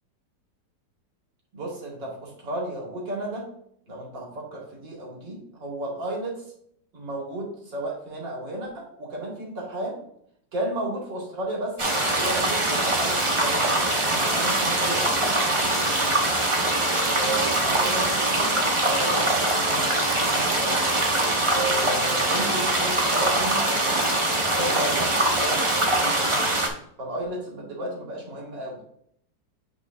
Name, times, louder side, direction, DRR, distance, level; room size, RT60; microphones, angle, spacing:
voice 1, 1.5-3.5 3.9-6.4 6.9-10.0 10.5-13.7 14.1-15.3 15.6-16.1 17.1-20.8 21.5-24.0 24.5-26.2 27.0-28.8, right 1 dB, 80° right, -2 dB, 2.6 m, -33 dB
sound 1, 11.8-26.7, right 1 dB, 35° right, 0.5 m, -23 dB
8.5 x 4.8 x 2.6 m, 0.68 s
omnidirectional pair, 1.9 m